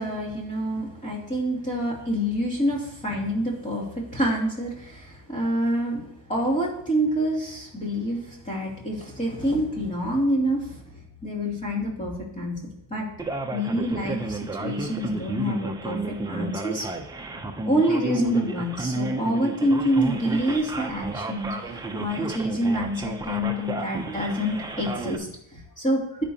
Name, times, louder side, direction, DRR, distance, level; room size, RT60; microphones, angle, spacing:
voice 1, 0.0-13.1 13.5-16.8 17.6-26.2, equal, 20° left, -3 dB, 2.7 m, -27 dB
Male speech man speaking, 13.2-25.2, right 3 dB, 10° right, 0.6 m, -32 dB
10.5 x 10.0 x 2.8 m, 0.73 s
cardioid pair, 175°, 36 cm